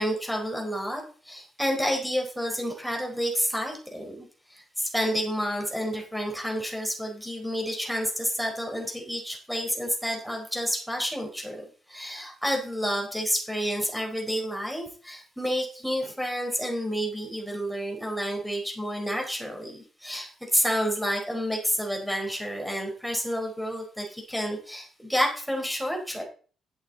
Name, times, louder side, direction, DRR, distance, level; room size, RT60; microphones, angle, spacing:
voice 1, 0.0-26.2, equal, ahead, 1 dB, 4.2 m, -30 dB
12.0 x 8.1 x 4.2 m, 0.40 s
cardioid pair, 90°, 0 cm